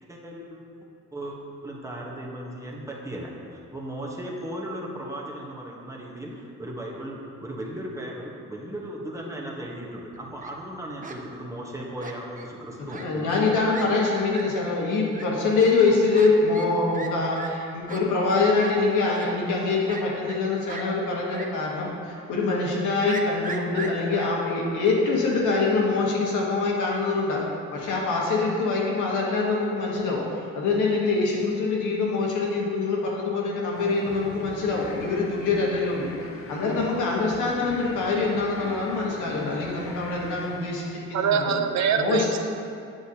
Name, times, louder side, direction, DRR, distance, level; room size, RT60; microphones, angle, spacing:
voice 1, 0.1-0.6 1.1-13.3, right 1 dB, 10° right, -3 dB, 1.1 m, -36 dB
Fowl, 10.1-10.5 11.0-11.2 12.0-12.5 12.9-13.1 13.4-13.5 13.7-13.8 14.3-14.4 15.1-15.2 16.1-16.3 16.5-16.7 16.9-17.1 17.4-17.5 17.9-18.0 18.6-18.7 19.1-19.3 19.9-20.4 20.7-20.8 21.3-21.5 21.8-21.9 23.1-24.3, right 4 dB, 25° right, 0.6 m, -37 dB
voice 2, 13.0-27.4 27.7-36.1 36.5-41.6 42.0-42.3, left 3 dB, 80° left, -3 dB, 1.4 m, -24 dB
sound 1, 33.7-41.5, left 3 dB, 45° left, 0.8 m, -41 dB
voice 3, 41.1-42.4, right 6 dB, 65° right, 7 dB, 0.6 m, -24 dB
8.0 x 6.3 x 2.9 m, 2.5 s
cardioid pair, 90°, 30 cm